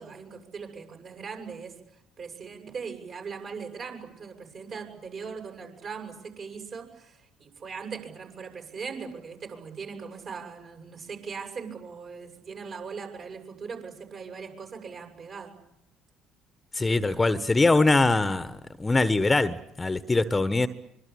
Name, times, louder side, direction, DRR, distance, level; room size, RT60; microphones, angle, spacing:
voice 1, 0.0-1.8 2.2-15.5, right 5 dB, 45° right, 4 dB, 7.9 m, -40 dB
voice 2, 16.7-20.7, left 2 dB, 20° left, 13 dB, 1.4 m, -23 dB
25.0 x 24.0 x 8.8 m, 0.80 s
hypercardioid pair, 55°, 0 cm